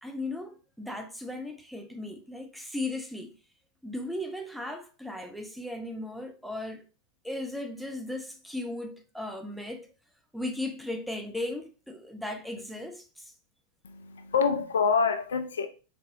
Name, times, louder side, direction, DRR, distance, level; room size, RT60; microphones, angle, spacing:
voice 1, 0.0-3.3 3.8-6.8 7.2-9.9 10.3-13.3, left 1 dB, ahead, 0.5 m, -36 dB
voice 2, 13.8-15.7, left 5 dB, 65° left, 0.4 m, -26 dB
4.0 x 2.6 x 2.6 m
figure-of-eight pair, 90°, 0 cm